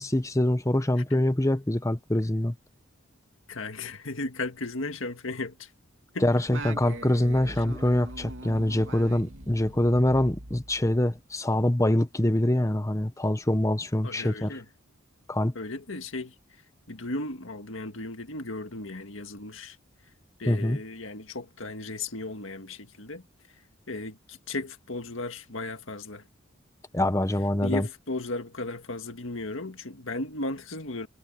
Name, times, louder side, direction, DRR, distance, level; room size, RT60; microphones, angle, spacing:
voice 1, 0.0-2.5 6.2-14.6 15.3-15.5 20.5-20.8 26.9-27.9, left 1 dB, 15° left, 1.0 m, -24 dB
voice 2, 3.5-5.7 6.1-6.3 14.0-14.6 15.6-16.3 16.9-19.8 20.4-23.2 23.9-26.2 27.6-31.1, left 2 dB, 70° left, 1.9 m, -35 dB
Singing, 6.5-11.2, right 1 dB, 65° right, 2.9 m, -41 dB
head